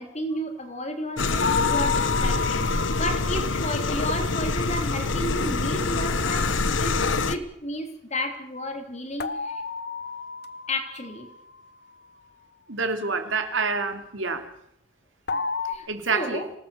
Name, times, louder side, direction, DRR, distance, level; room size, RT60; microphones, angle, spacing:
voice 1, 0.0-6.5 6.8-6.9 7.3-9.6 10.7-11.3 15.7-16.5, left 1 dB, 35° left, 6 dB, 3.2 m, -32 dB
sound 1, 1.2-7.4, left 3 dB, 70° left, 1.3 m, -25 dB
sound 2, 1.4-4.4 9.2-11.4 15.3-15.8, left 5 dB, 55° left, 1.3 m, -31 dB
voice 2, 12.7-14.4 15.9-16.4, right 4 dB, 75° right, 6 dB, 3.2 m, -27 dB
26.5 x 19.0 x 6.9 m, 0.76 s
head